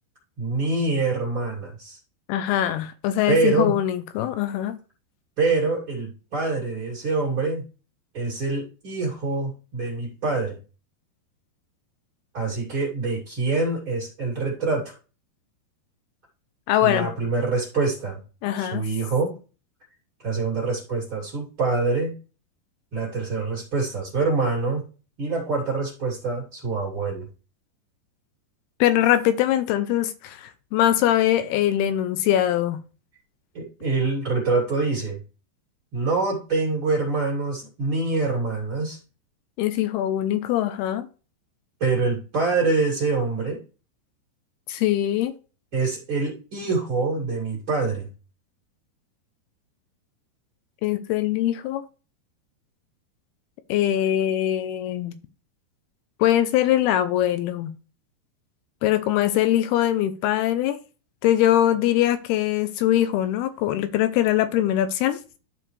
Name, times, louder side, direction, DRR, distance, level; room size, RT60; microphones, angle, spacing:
voice 1, 0.4-2.0 3.3-3.8 5.4-7.6 8.1-10.6 12.3-14.9 16.8-18.2 18.5-19.4 20.2-22.2 22.9-24.8 25.2-27.3 33.5-35.2 35.9-39.0 41.8-43.6 45.7-48.1, right 3 dB, 35° right, 2.8 m, -25 dB
voice 2, 2.3-4.8 16.7-17.1 18.4-18.9 28.8-32.8 39.6-41.1 44.7-45.3 50.8-51.8 53.7-55.2 56.2-57.7 58.8-60.8 61.2-65.2, left 12 dB, 80° left, 2.4 m, -22 dB
13.0 x 4.7 x 3.2 m
omnidirectional pair, 4.9 m